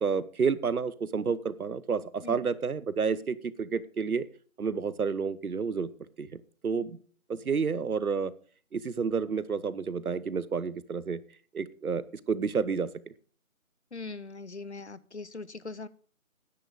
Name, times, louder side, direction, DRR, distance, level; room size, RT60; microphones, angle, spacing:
voice 1, 0.0-4.3 4.6-5.9 6.2-7.0 7.3-8.3 8.7-11.2 11.5-12.9, right 5 dB, 90° right, 17 dB, 1.0 m, -30 dB
voice 2, 13.9-15.9, left 3 dB, 50° left, 17 dB, 0.6 m, -41 dB
9.9 x 9.1 x 5.1 m, 0.42 s
figure-of-eight pair, 175°, 42 cm